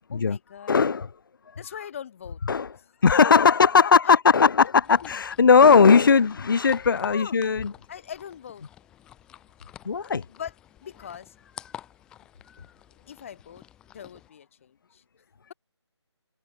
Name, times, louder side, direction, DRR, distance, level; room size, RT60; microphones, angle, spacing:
voice 1, 0.1-0.8 1.6-2.4 4.0-4.1 4.6-4.7 5.0-5.2 6.1-6.3 7.0-7.3 7.9-8.6 10.3-10.5 10.8-11.3 13.1-13.6 13.9-15.0, left 8 dB, 30° left, 2.6 m, -40 dB
voice 2, 0.7-1.1 2.5-2.7 3.0-7.7 9.8-10.2, left 5 dB, 45° left, 0.7 m, -18 dB
sound 1, 4.8-14.3, left 11 dB, 5° left, 0.8 m, -47 dB
figure-of-eight pair, 165°, 15 cm